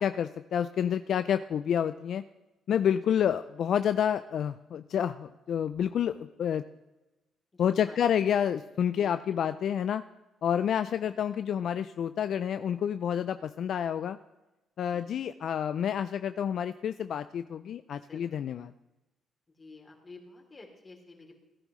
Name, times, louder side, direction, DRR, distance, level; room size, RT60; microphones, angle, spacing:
voice 1, 0.0-2.2 2.7-6.7 7.6-10.0 10.4-14.2 14.8-18.7, left 9 dB, 65° left, 11 dB, 0.4 m, -29 dB
voice 2, 7.5-8.0 8.9-9.2 11.0-11.2 14.9-15.1 18.0-18.3 19.5-21.3, left 3 dB, 30° left, 1 dB, 3.1 m, -51 dB
17.0 x 10.5 x 3.2 m, 1.0 s
cardioid pair, 90°, 0 cm